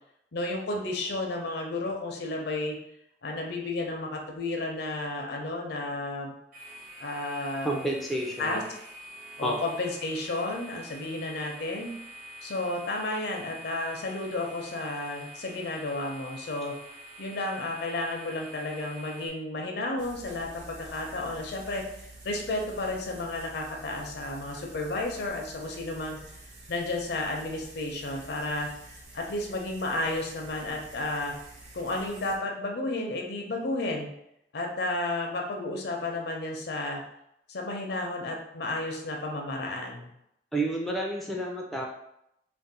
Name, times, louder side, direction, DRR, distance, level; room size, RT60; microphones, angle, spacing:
voice 1, 0.3-2.8 3.2-6.3 7.0-7.8 8.4-8.6 9.4-11.9 12.4-16.7 17.2-21.8 22.2-26.2 26.7-28.7 29.1-31.3 31.7-34.1 34.5-37.0 37.5-40.1, left 2 dB, 65° left, 1 dB, 0.6 m, -32 dB
sound 1, 6.5-19.3, equal, 50° right, 1.0 m, -46 dB
voice 2, 7.6-8.7 9.4-9.6 40.5-41.9, right 1 dB, ahead, -2 dB, 0.4 m, -30 dB
sound 2, 20.0-32.4, right 2 dB, 85° right, 0.9 m, -49 dB
2.5 x 2.1 x 4.0 m, 0.79 s
head